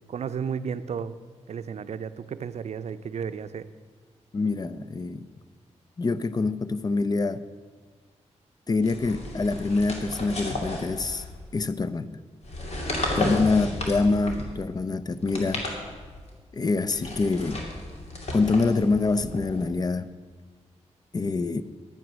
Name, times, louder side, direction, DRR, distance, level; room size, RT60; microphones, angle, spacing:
voice 1, 0.1-1.2 1.5-3.7, right 6 dB, 65° right, 12 dB, 0.5 m, -33 dB
voice 2, 4.3-5.3 6.0-7.4 8.7-11.2 11.5-12.1 13.1-15.6 16.5-17.6 18.3-20.1 21.1-21.6, left 3 dB, 35° left, 13 dB, 0.5 m, -25 dB
sound 1, 8.8-11.6 12.4-14.6 15.2-16.3 16.9-19.7, left 1 dB, 60° left, 2.4 m, -34 dB
10.5 x 9.3 x 6.2 m, 1.5 s
wide cardioid pair, 95°, 12 cm